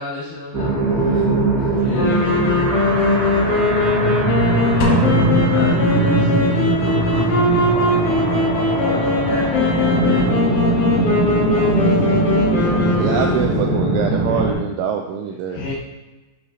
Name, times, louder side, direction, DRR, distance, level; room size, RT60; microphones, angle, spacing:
voice 1, 0.0-0.8 1.8-2.6 3.1-5.1 5.4-7.8 8.1-10.3 11.7-11.9 15.5-15.7, left 3 dB, 70° left, -7 dB, 1.9 m, -33 dB
sound 1, 0.5-14.5, right 2 dB, 60° right, 1.3 m, -20 dB
voice 2, 0.8-1.8 11.3-13.3, equal, 30° left, -10 dB, 2.3 m, -35 dB
sound 2, 1.9-13.8, left 3 dB, 50° left, 2.7 m, -20 dB
sound 3, 4.8-6.6, left 1 dB, 90° left, 2.1 m, -26 dB
voice 3, 13.0-15.6, right 7 dB, 85° right, 3 dB, 2.7 m, -24 dB
8.5 x 7.0 x 2.8 m, 1.1 s
omnidirectional pair, 5.7 m